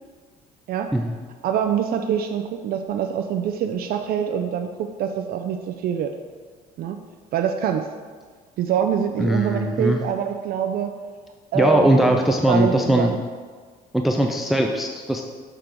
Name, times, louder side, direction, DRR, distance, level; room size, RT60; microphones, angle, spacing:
voice 1, 1.4-6.1 6.8-7.0 7.3-7.9 8.6-10.9 11.5-12.2 12.4-13.2, right 8 dB, 65° right, 5 dB, 0.4 m, -25 dB
voice 2, 9.2-10.0 11.5-13.1 13.9-15.2, right 1 dB, ahead, 3 dB, 0.4 m, -20 dB
6.6 x 3.7 x 4.5 m, 1.5 s
cardioid pair, 110°, 17 cm